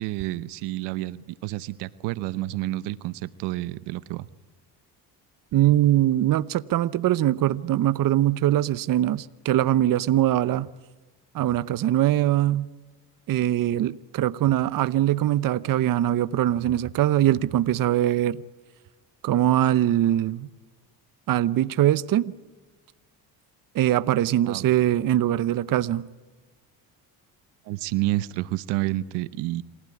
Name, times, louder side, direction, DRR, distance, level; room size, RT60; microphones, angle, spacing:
voice 1, 0.0-4.3 24.5-24.7 27.6-29.6, right 17 dB, 85° right, 0.8 m, -29 dB
voice 2, 5.5-10.7 11.3-12.7 13.3-18.4 19.2-20.5 21.3-22.3 23.7-26.1, right 13 dB, 55° right, 0.8 m, -22 dB
27.5 x 16.0 x 9.6 m
supercardioid pair, 80°, 40 cm